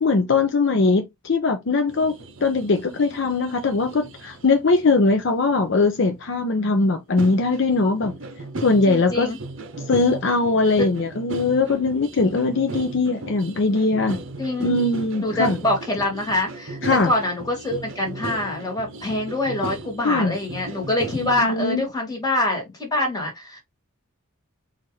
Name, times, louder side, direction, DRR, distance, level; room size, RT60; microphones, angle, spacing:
voice 1, 0.0-8.1 8.6-9.3 9.9-14.2 14.6-15.6 16.8-17.1 20.0-20.4 21.2-21.8, left 3 dB, 60° left, 0.5 m, -21 dB
sound 1, 1.9-6.7 7.2-21.4, right 2 dB, 60° right, 0.7 m, -37 dB
voice 2, 8.8-9.4 14.4-14.8 15.2-16.8 17.0-23.6, left 2 dB, 15° left, 1.5 m, -25 dB
4.3 x 2.5 x 3.1 m
head